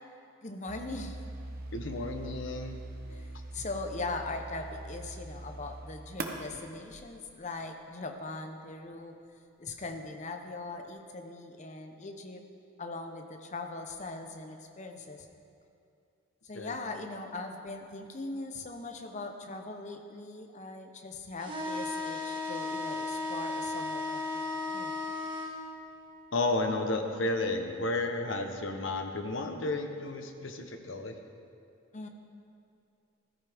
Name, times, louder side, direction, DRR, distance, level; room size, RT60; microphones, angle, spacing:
voice 1, 0.4-1.2 3.1-9.1 9.6-12.4 12.8-15.3 16.4-24.9 31.9-32.1, left 3 dB, 35° left, 5 dB, 0.8 m, -40 dB
sound 1, 0.7-7.6, right 2 dB, 45° right, 0.9 m, -43 dB
voice 2, 1.7-2.8 16.5-16.7 26.3-31.2, left 2 dB, 60° left, 5 dB, 1.0 m, -32 dB
sound 2, 21.4-25.5, left 3 dB, 25° right, 1.5 m, -35 dB
15.0 x 13.5 x 3.6 m, 2.5 s
head